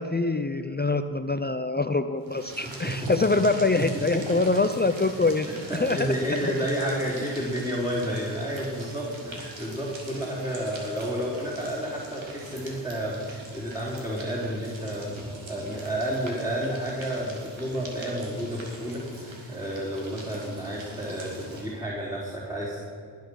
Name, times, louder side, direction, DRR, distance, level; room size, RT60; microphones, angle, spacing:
voice 1, 0.0-5.5 5.7-6.1, left 3 dB, 20° left, 9 dB, 0.6 m, -24 dB
sound 1, 2.2-21.8, right 1 dB, 70° right, 3.3 m, -43 dB
voice 2, 2.6-3.1 3.8-4.0 5.7-22.8, equal, 5° right, -7 dB, 3.9 m, -31 dB
19.5 x 8.4 x 6.4 m, 2.4 s
cardioid pair, 65°, 47 cm